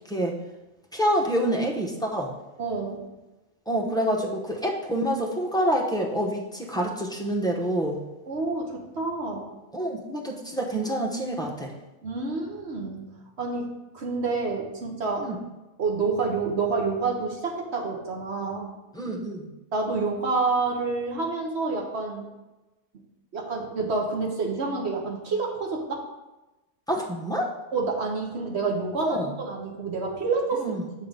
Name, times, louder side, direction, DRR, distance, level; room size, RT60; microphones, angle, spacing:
voice 1, 0.9-2.4 3.7-8.0 9.7-11.7 15.2-15.4 18.9-19.5 26.9-27.5 29.0-29.3 30.6-30.8, right 1 dB, 5° left, -2 dB, 0.7 m, -27 dB
voice 2, 2.6-3.0 8.3-9.5 12.0-13.1 13.4-15.3 15.8-18.7 19.7-22.3 23.3-26.0 27.7-30.7, right 4 dB, 65° right, 0 dB, 1.3 m, -28 dB
7.2 x 3.8 x 5.4 m, 1.0 s
omnidirectional pair, 1.2 m